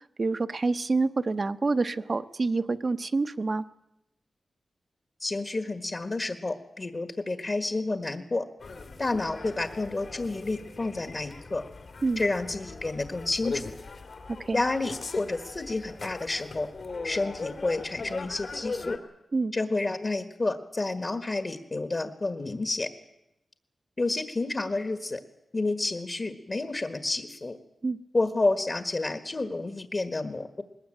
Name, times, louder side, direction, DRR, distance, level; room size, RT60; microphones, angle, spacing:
voice 1, 0.0-3.6 12.0-12.2 14.4-14.6 19.3-19.5 27.8-28.0, right 3 dB, 45° right, 11 dB, 0.8 m, -27 dB
voice 2, 5.2-8.5 9.0-11.6 12.2-13.7 14.5-16.7 17.0-19.0 19.5-22.9 24.0-25.2 25.5-27.6 28.1-30.6, left 2 dB, 40° left, 8 dB, 1.5 m, -30 dB
sound 1, 8.6-19.0, left 3 dB, 65° left, 2.6 m, -39 dB
20.5 x 19.5 x 9.0 m, 0.88 s
wide cardioid pair, 85°, 0 cm